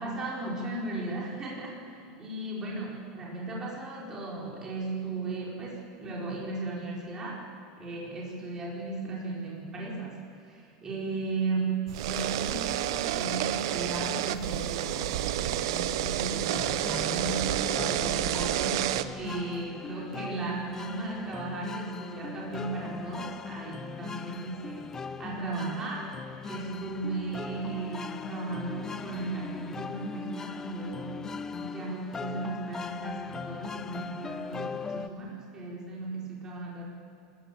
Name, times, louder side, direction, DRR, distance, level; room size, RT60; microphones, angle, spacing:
voice 1, 0.0-7.4 7.8-26.1 26.4-36.9, right 3 dB, 25° right, -4 dB, 5.0 m, -36 dB
sound 1, 11.9-19.0, right 12 dB, 75° right, 1.0 m, -29 dB
sound 2, 16.3-35.1, left 5 dB, 20° left, 0.7 m, -39 dB
27.0 x 14.5 x 8.6 m, 2.3 s
supercardioid pair, 135°, 3 cm